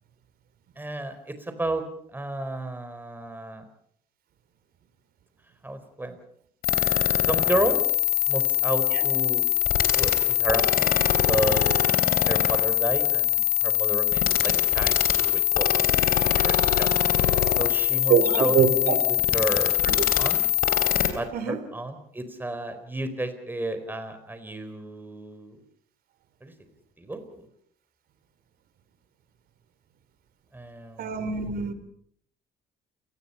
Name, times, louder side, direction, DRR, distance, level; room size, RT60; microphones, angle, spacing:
voice 1, 0.8-3.6 5.6-6.2 7.2-7.8 8.3-9.4 9.9-10.9 11.3-11.7 12.3-15.9 16.4-16.9 17.6-18.5 18.8-19.8 20.2-20.4 21.1-25.6 26.4-26.5 27.0-27.5 30.5-31.2, right 2 dB, 10° right, 9 dB, 4.4 m, -32 dB
sound 1, 6.6-21.1, left 12 dB, 60° left, 3.5 m, -22 dB
voice 2, 18.1-19.0 19.9-20.0 21.3-21.6 31.0-31.7, right 7 dB, 60° right, 12 dB, 3.7 m, -24 dB
29.0 x 20.0 x 5.7 m, 0.66 s
cardioid pair, 110°, 17 cm